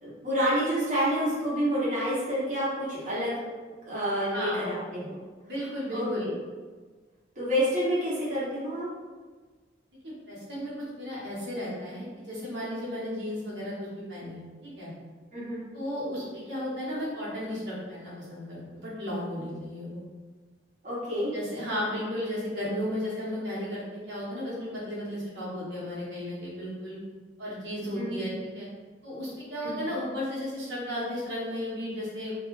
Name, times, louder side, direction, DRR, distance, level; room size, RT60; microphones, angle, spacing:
voice 1, 0.0-3.3 3.9-5.2 5.9-6.3 7.4-8.9 15.3-15.6 20.8-21.3 27.9-28.3 29.6-29.8, equal, 45° right, -10 dB, 1.0 m, -28 dB
voice 2, 4.3-4.7 5.4-6.3 10.0-14.9 15.7-20.0 21.3-27.0 27.4-28.7 29.0-32.3, equal, 80° right, -8 dB, 1.2 m, -34 dB
3.0 x 2.4 x 3.1 m, 1.4 s
head